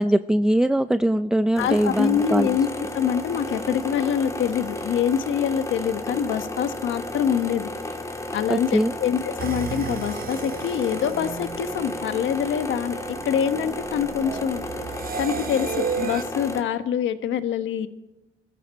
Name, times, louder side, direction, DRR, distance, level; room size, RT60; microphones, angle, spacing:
voice 1, 0.0-2.6 8.5-8.9, right 1 dB, 5° right, 12 dB, 0.5 m, -21 dB
voice 2, 1.6-7.7 8.3-13.0 13.2-14.6 15.2-17.9, left 8 dB, 75° left, 10 dB, 1.4 m, -25 dB
sound 1, 1.6-16.6, left 1 dB, 15° left, 2.6 m, -33 dB
sound 2, 9.4-16.2, right 7 dB, 50° right, 1.0 m, -34 dB
22.5 x 14.0 x 4.4 m, 0.95 s
cardioid pair, 90°, 20 cm